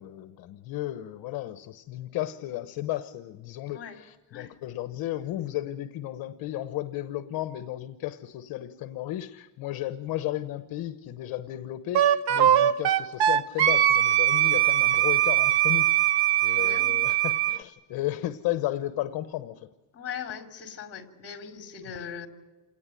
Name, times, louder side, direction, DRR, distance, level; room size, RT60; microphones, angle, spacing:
voice 1, 0.0-19.7 21.9-22.1, left 14 dB, 55° left, 10 dB, 1.1 m, -34 dB
Wind instrument woodwind instrument, 11.9-17.6, right 12 dB, 60° right, 1.0 m, -21 dB
voice 2, 16.6-16.9 19.9-22.3, left 7 dB, 35° left, 3 dB, 3.3 m, -39 dB
28.5 x 18.5 x 9.1 m, 1.2 s
cardioid pair, 155°, 43 cm